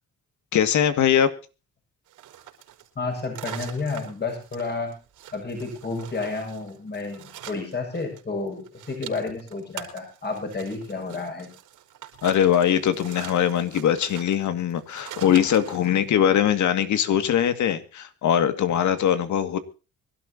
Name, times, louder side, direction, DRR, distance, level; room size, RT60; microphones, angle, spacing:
voice 1, 0.5-1.3 12.2-19.6, left 9 dB, 70° left, 10 dB, 2.2 m, -21 dB
sound 1, 2.1-8.2 8.5-15.9, right 11 dB, 85° right, 4.3 m, -43 dB
voice 2, 2.9-5.0 5.3-11.5, left 3 dB, 35° left, 4 dB, 6.8 m, -31 dB
24.5 x 12.5 x 2.9 m, 0.34 s
cardioid pair, 90°, 30 cm